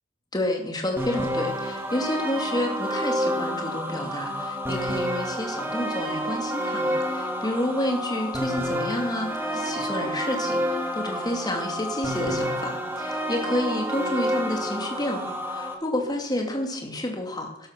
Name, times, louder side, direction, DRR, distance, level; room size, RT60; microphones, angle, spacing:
voice 1, 0.3-17.7, left 1 dB, 20° left, 2 dB, 2.5 m, -30 dB
sound 1, 1.0-15.7, equal, 10° right, 1.9 m, -29 dB
12.5 x 12.5 x 6.1 m, 0.83 s
head